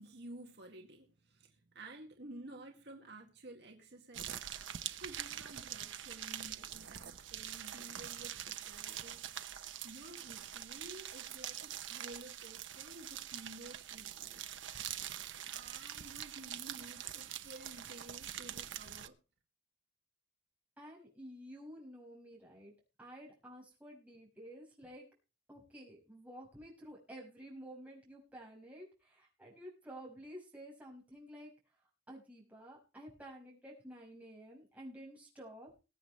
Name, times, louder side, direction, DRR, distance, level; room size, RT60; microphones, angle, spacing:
voice 1, 0.0-4.4 5.0-9.2 9.8-14.4 15.5-19.2, right 2 dB, 60° right, 2.1 m, -52 dB
sound 1, 4.1-19.1, right 10 dB, 80° right, 0.9 m, -44 dB
voice 2, 20.8-22.7 23.0-25.1 25.5-31.5 32.1-35.7, equal, 10° right, 6.1 m, -51 dB
21.5 x 8.5 x 3.2 m
head